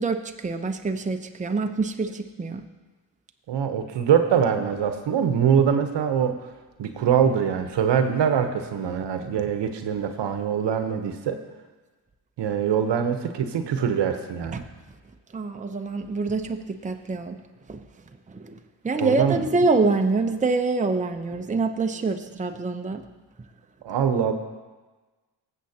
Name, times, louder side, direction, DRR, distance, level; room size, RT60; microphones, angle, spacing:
voice 1, 0.0-2.7 14.5-14.6 15.3-17.4 17.7-17.9 18.3-18.6 18.8-23.1, right 3 dB, 15° right, 5 dB, 0.8 m, -25 dB
voice 2, 3.5-6.3 6.8-11.4 12.4-14.6 18.9-19.4 23.8-24.3, right 8 dB, 60° right, 7 dB, 1.1 m, -23 dB
18.0 x 7.3 x 2.9 m, 1.2 s
supercardioid pair, 55°, 47 cm